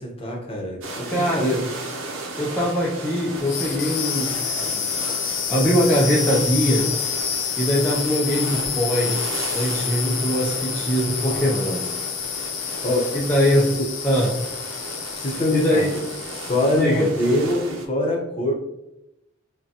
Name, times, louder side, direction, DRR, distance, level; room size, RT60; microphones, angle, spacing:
voice 1, 0.0-1.6 11.2-11.7 12.8-13.0 13.7-13.9 15.1-15.9 16.5-18.5, left 1 dB, 30° left, 0 dB, 0.8 m, -24 dB
sound 1, 0.8-17.9, right 2 dB, 90° right, 0.6 m, -35 dB
voice 2, 1.1-1.6 2.4-4.3 4.6-4.9 5.2-6.9 7.6-9.1 9.5-11.8 13.1-13.7 14.0-14.3 15.5-15.9 16.8-17.1, equal, 10° left, -6 dB, 0.4 m, -22 dB
sound 2, 3.4-16.9, left 8 dB, 65° left, 0.5 m, -28 dB
5.4 x 2.2 x 2.8 m, 0.89 s
head